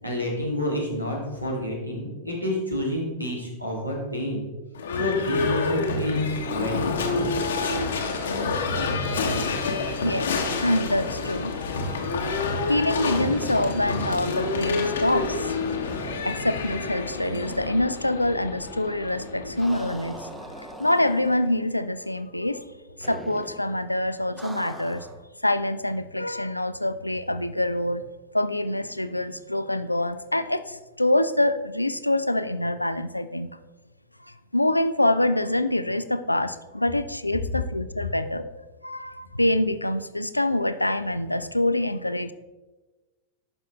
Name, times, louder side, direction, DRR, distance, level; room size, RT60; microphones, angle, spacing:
voice 1, 0.0-4.4 4.9-7.6, left 1 dB, 90° right, -2 dB, 2.1 m, -29 dB
Livestock farm animals working animals / Bell, 4.7-20.6, left 3 dB, 65° left, 1.1 m, -28 dB
voice 2, 10.0-11.5 12.4-15.5 16.2-20.3 20.6-22.6 23.0-25.1 25.4-28.0 28.3-33.5 34.3-42.3, left 1 dB, 85° left, 12 dB, 0.4 m, -25 dB
sound 1, 13.0-17.2 17.4-17.5 19.6-21.6 23.0-23.7 24.4-25.2, right 1 dB, 10° right, 0.8 m, -41 dB
11.0 x 5.6 x 3.5 m, 1.2 s
figure-of-eight pair, 90°, 0 cm